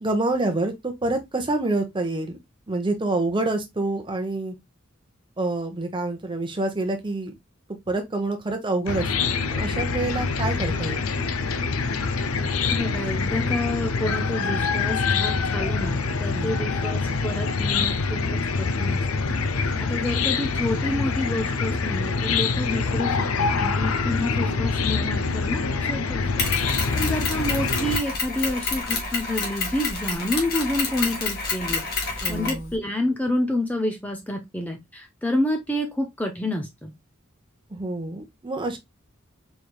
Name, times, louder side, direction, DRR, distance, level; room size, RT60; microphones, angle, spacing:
voice 1, 0.0-2.4 2.7-4.5 5.4-7.3 7.9-11.1 16.3-16.6 32.2-32.7 37.7-38.8, right 2 dB, 25° right, 0.8 m, -27 dB
Chicken rooster / Cricket, 8.9-28.0, left 4 dB, 90° left, 0.6 m, -25 dB
voice 2, 12.7-19.0 19.6-26.5 26.9-36.9, left 1 dB, 10° left, 0.6 m, -29 dB
Mechanisms, 26.4-32.7, left 4 dB, 50° left, 1.6 m, -28 dB
4.5 x 3.3 x 2.2 m
head